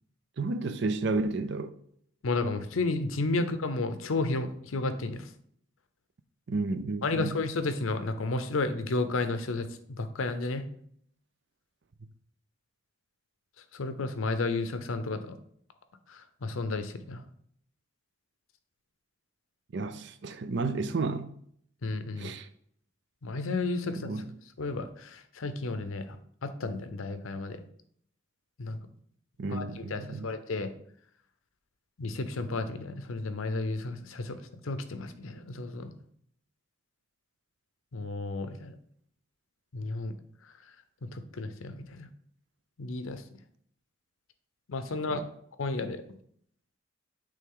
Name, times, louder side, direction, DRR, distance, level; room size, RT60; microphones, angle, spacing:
voice 1, 0.4-1.7 6.5-7.3 19.7-21.3 22.2-22.5 24.0-24.3 29.4-30.3 45.1-45.3, right 3 dB, 55° right, 0.5 m, -32 dB
voice 2, 2.2-5.3 7.0-10.7 13.7-15.3 16.1-17.2 21.8-22.3 23.2-24.1 24.6-26.2 26.4-27.6 28.6-28.8 29.5-30.7 32.0-34.4 34.6-35.9 37.9-38.7 39.7-40.1 40.4-40.5 41.1-42.1 42.8-43.2 44.7-45.2 45.6-46.0, left 3 dB, 80° left, 0.6 m, -32 dB
8.5 x 3.5 x 3.8 m
head